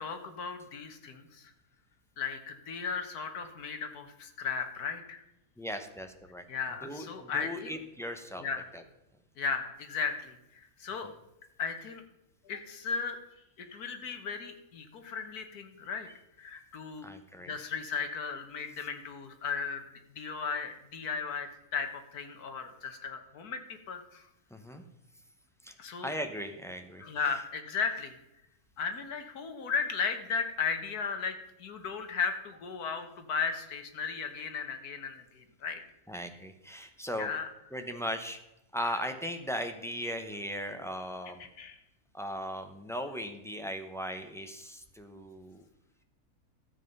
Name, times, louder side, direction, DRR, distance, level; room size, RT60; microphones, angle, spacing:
voice 1, 0.0-1.5 2.2-5.2 6.5-7.8 8.4-8.7 9.4-11.1 11.6-12.0 12.4-13.2 13.6-16.1 16.4-17.1 17.5-19.8 20.2-24.3 25.8-26.1 27.0-28.2 28.8-35.8 37.2-37.5 38.8-38.9 41.4-41.8, left 5 dB, 80° left, 7 dB, 1.7 m, -36 dB
voice 2, 5.6-6.4 6.8-8.4 8.7-8.8 17.0-17.5 24.5-24.8 25.6-25.7 26.0-27.0 36.1-37.3 37.7-38.4 38.7-41.4 42.1-45.6, equal, 5° left, 6 dB, 0.6 m, -38 dB
13.0 x 7.6 x 5.4 m, 0.92 s
omnidirectional pair, 1.6 m